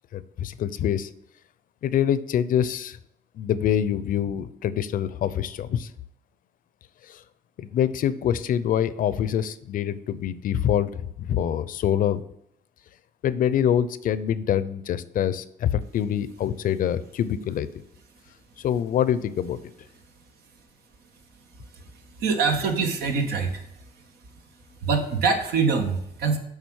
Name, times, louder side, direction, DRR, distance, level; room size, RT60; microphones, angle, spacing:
voice 1, 0.1-1.1 1.8-3.0 3.4-5.9 7.1-7.2 7.6-12.2 13.2-17.7 18.6-19.6, left 9 dB, 60° left, 15 dB, 0.6 m, -25 dB
voice 2, 22.2-23.7 24.8-26.4, right 5 dB, 80° right, 5 dB, 1.4 m, -24 dB
7.4 x 5.0 x 6.3 m, 0.75 s
cardioid pair, 90°, 16 cm